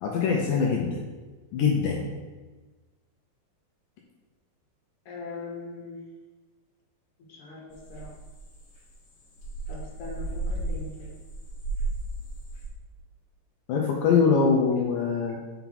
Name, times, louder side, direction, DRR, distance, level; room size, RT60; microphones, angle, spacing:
voice 1, 0.0-1.0 1.5-2.1 13.7-15.4, left 5 dB, 80° left, -1 dB, 2.0 m, -23 dB
voice 2, 5.1-6.0 7.3-8.1 9.7-11.2, left 3 dB, 60° left, -5 dB, 2.7 m, -41 dB
sound 1, 7.7-12.7, right 2 dB, 40° left, 1.8 m, -34 dB
5.8 x 4.5 x 4.0 m, 1.3 s
omnidirectional pair, 4.4 m